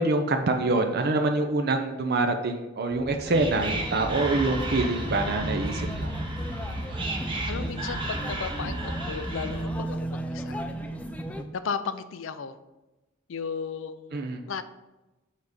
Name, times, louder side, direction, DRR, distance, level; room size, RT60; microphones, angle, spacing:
voice 1, 0.0-6.1 14.1-14.4, right 2 dB, 50° right, 5 dB, 0.6 m, -25 dB
Whispering, 2.9-9.8, right 1 dB, 25° right, 0.9 m, -33 dB
sound 1, 3.3-11.4, right 1 dB, 5° left, 0.4 m, -35 dB
voice 2, 7.5-10.6 11.5-12.5 13.3-14.6, left 6 dB, 65° left, 12 dB, 0.5 m, -35 dB
7.2 x 4.0 x 5.0 m, 1.1 s
head